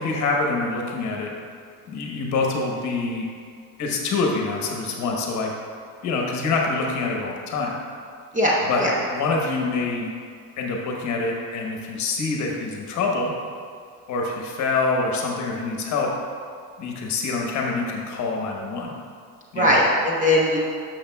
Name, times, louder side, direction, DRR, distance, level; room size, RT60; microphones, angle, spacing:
voice 1, 0.0-1.3 1.9-3.2 3.8-5.5 6.0-7.7 8.7-10.1 10.6-13.3 14.1-16.1 16.8-18.9 19.5-19.8, left 3 dB, 45° left, 0 dB, 1.1 m, -25 dB
voice 2, 8.3-8.9 19.6-20.6, left 1 dB, 20° right, -4 dB, 0.9 m, -19 dB
10.0 x 6.5 x 2.3 m, 2.2 s
cardioid pair, 135°, 38 cm